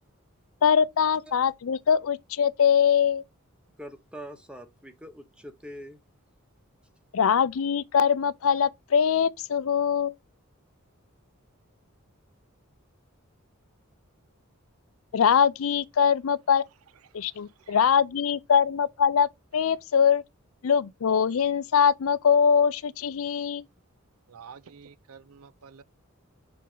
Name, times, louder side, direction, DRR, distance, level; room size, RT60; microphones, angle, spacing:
voice 1, 0.6-3.2 7.1-10.1 15.1-16.6 17.1-20.2 20.6-23.7, left 7 dB, 75° left, 0.5 m, -22 dB
voice 2, 3.8-6.0, equal, 5° right, 0.7 m, -43 dB
voice 3, 24.3-25.8, right 6 dB, 90° right, 0.5 m, -49 dB
5.9 x 4.6 x 3.8 m
head